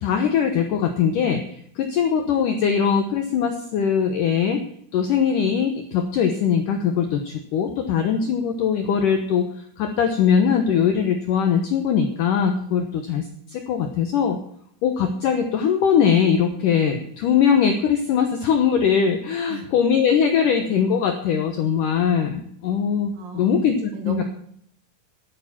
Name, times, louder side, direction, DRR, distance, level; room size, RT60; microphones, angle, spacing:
voice 1, 0.0-4.6 4.9-14.4 14.8-24.2, left 7 dB, 75° left, 5 dB, 1.9 m, -21 dB
voice 2, 23.1-24.2, right 5 dB, 60° right, 5 dB, 2.8 m, -36 dB
11.5 x 9.0 x 7.2 m, 0.66 s
omnidirectional pair, 5.2 m